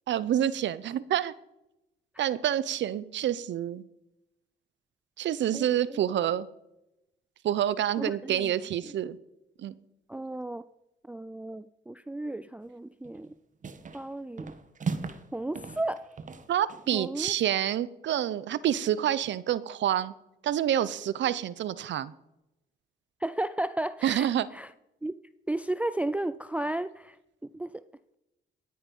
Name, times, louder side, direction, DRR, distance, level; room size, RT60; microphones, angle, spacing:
voice 1, 0.1-1.3 2.2-3.8 5.2-6.5 7.4-9.2 9.6-9.7 16.5-20.1 20.4-22.1 24.0-24.5, right 11 dB, 65° right, 18 dB, 0.8 m, -28 dB
voice 2, 5.5-6.0 8.0-8.5 8.8-8.9 10.1-10.6 11.0-13.3 13.9-14.5 15.3-16.1 16.9-17.3 23.2-24.7 25.0-25.1 25.5-27.2 27.5-27.7, right 1 dB, 5° right, 14 dB, 0.4 m, -34 dB
sound 1, 13.0-13.3 13.6-14.1 14.4-15.3 15.5-16.9, right 5 dB, 40° right, 1.3 m, -37 dB
18.0 x 9.5 x 5.5 m, 0.91 s
cardioid pair, 90°, 20 cm